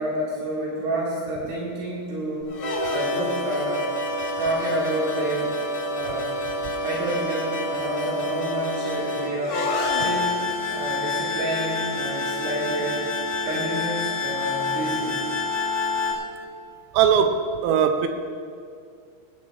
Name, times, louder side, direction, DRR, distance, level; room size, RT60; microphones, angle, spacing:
voice 1, 0.0-2.5 2.9-3.8 4.4-5.5 5.9-6.3 6.8-9.6 10.0-10.4 10.7-13.1 13.4-15.2, right 1 dB, 65° right, -7 dB, 4.7 m, -29 dB
sound 1, 2.5-16.1, left 2 dB, 75° left, 1.3 m, -28 dB
voice 2, 16.9-18.1, right 8 dB, 80° right, 6 dB, 3.1 m, -20 dB
19.0 x 17.5 x 2.7 m, 2.3 s
omnidirectional pair, 6.0 m